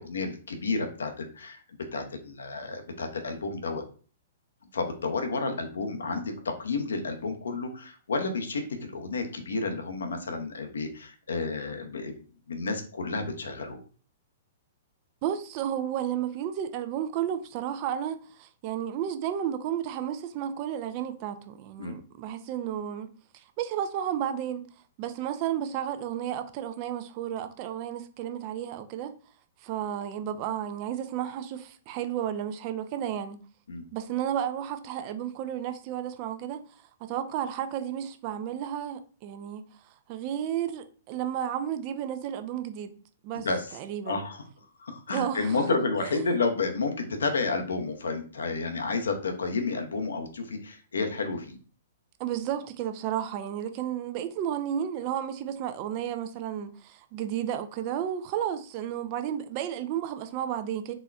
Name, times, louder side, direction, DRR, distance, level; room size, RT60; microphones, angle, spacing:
voice 1, 0.0-1.6 1.9-3.8 4.7-12.1 12.5-13.8 21.8-22.0 33.7-33.8 43.4-43.8 44.0-44.4 44.8-51.6, left 3 dB, 70° left, 0.7 m, -31 dB
voice 2, 15.2-24.7 25.0-29.1 29.6-33.4 33.9-39.7 40.1-42.9 43.2-43.5 43.7-44.2 45.1-45.6 46.0-46.1 52.2-60.9, right 10 dB, 40° right, 0.5 m, -32 dB
4.1 x 3.0 x 2.3 m
figure-of-eight pair, 110°, 0 cm